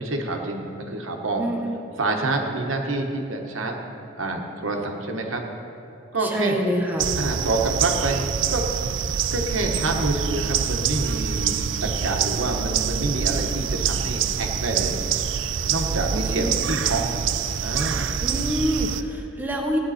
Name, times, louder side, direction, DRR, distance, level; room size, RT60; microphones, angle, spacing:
voice 1, 0.0-1.5 2.0-3.8 4.2-5.4 6.1-6.6 7.2-8.6 9.3-15.0 15.6-17.2 17.6-18.1, right 2 dB, 80° right, 2 dB, 1.3 m, -27 dB
voice 2, 1.4-1.7 6.2-7.1 16.1-16.8 18.2-19.8, equal, 10° right, 0 dB, 1.1 m, -27 dB
sound 1, 7.0-19.0, right 7 dB, 65° right, 0.4 m, -25 dB
16.0 x 9.5 x 4.3 m, 2.9 s
head